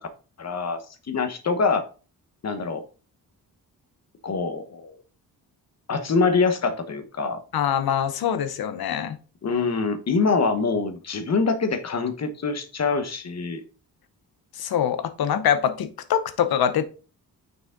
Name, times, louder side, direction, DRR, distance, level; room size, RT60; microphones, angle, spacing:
voice 1, 0.4-0.8 1.1-1.8 2.4-2.8 4.2-4.9 5.9-7.4 9.4-13.6, left 4 dB, 45° left, 8 dB, 1.2 m, -24 dB
voice 2, 7.5-9.2 14.6-16.8, left 9 dB, 80° left, 11 dB, 0.9 m, -24 dB
6.6 x 4.9 x 3.8 m, 0.35 s
cardioid pair, 115°, 36 cm